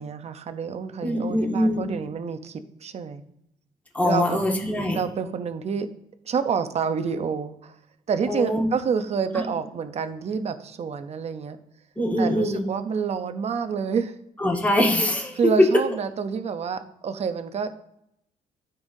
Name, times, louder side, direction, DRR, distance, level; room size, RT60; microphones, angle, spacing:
voice 1, 0.0-3.2 4.0-4.4 4.9-5.9 6.2-7.8 8.1-11.6 12.2-14.1 15.4-17.7, right 6 dB, 45° right, 9 dB, 0.7 m, -28 dB
voice 2, 1.0-1.9 3.9-5.0 8.3-8.7 12.0-12.6 14.4-15.7, left 1 dB, 10° left, -2 dB, 1.9 m, -22 dB
13.0 x 5.6 x 2.7 m, 0.80 s
cardioid pair, 125°, 15 cm